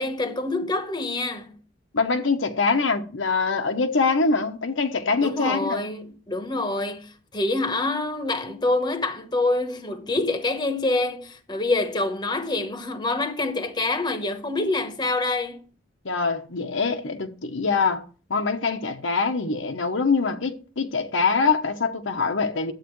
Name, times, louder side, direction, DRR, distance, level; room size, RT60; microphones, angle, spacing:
voice 1, 0.0-1.6 5.2-15.6, left 2 dB, 20° left, 1.0 m, -26 dB
voice 2, 1.9-5.8 16.0-18.0 18.3-22.7, left 4 dB, 90° left, 1.0 m, -24 dB
11.5 x 8.1 x 3.1 m
head